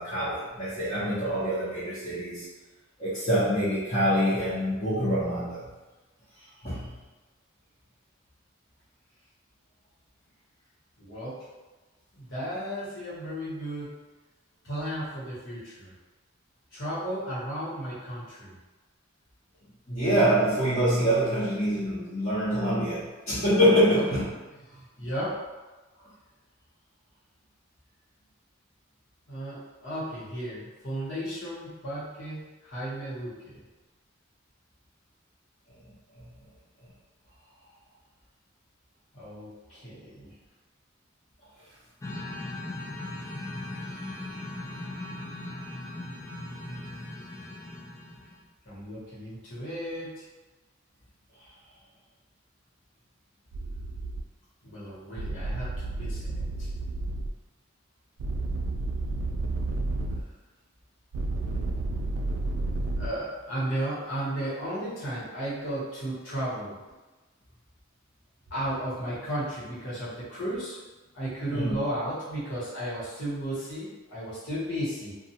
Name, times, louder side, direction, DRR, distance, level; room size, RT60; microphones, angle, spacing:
voice 1, 0.0-2.4 3.0-5.6 6.6-6.9 19.9-24.2 46.7-46.9 71.5-71.8, equal, 35° left, -15 dB, 0.9 m, -25 dB
voice 2, 11.0-11.4 12.1-13.9 14.6-15.9 16.7-18.5 23.8-24.0 25.0-25.4 29.3-33.6 39.1-40.3 48.7-50.2 54.6-56.7 63.0-66.8 68.5-70.8 71.1-75.1, right 1 dB, 70° left, -9 dB, 1.2 m, -34 dB
sound 1, 42.0-48.4, left 1 dB, 15° left, 0.3 m, -38 dB
sound 2, 53.5-54.2 55.2-57.3 58.2-60.2 61.1-63.1, right 2 dB, 85° right, 0.3 m, -31 dB
2.5 x 2.3 x 2.8 m, 1.2 s
head